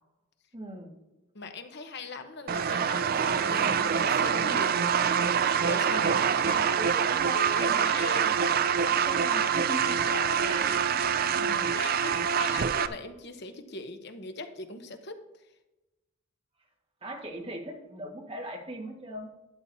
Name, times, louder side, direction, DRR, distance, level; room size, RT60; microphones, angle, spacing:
voice 1, 0.5-0.9 5.9-10.1 10.4-12.2 17.0-19.3, right 1 dB, 25° right, 0 dB, 1.7 m, -41 dB
voice 2, 1.3-4.9 5.6-6.1 6.4-6.6 7.3-8.3 9.8-10.6 11.7-15.2, left 3 dB, 55° left, 7 dB, 1.0 m, -40 dB
sound 1, 2.5-12.9, right 7 dB, 45° right, 0.4 m, -25 dB
12.0 x 9.9 x 2.8 m, 1.0 s
head